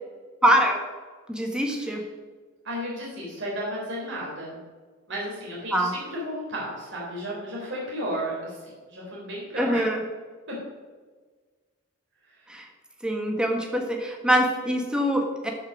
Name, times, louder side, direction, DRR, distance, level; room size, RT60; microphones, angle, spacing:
voice 1, 0.4-0.7 1.3-2.0 5.7-5.9 9.6-10.0 12.5-12.6 13.0-15.5, equal, 5° right, 1 dB, 1.6 m, -24 dB
voice 2, 2.6-4.6 5.1-9.8 10.5-10.6, equal, 60° right, -4 dB, 3.6 m, -33 dB
12.5 x 5.8 x 6.2 m, 1.4 s
head